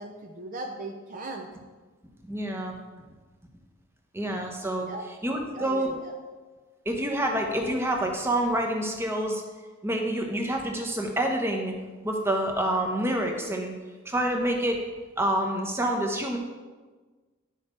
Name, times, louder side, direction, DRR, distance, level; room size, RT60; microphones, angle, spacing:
voice 1, 0.0-1.5 4.9-5.1 5.5-6.1, right 2 dB, 40° right, 3 dB, 0.6 m, -38 dB
voice 2, 2.2-2.8 4.1-4.9 5.2-5.9 6.8-9.4 9.8-11.7 12.0-13.7 14.0-14.8 15.2-16.4, right 1 dB, 10° right, 2 dB, 1.0 m, -27 dB
9.9 x 6.5 x 4.5 m, 1.3 s
head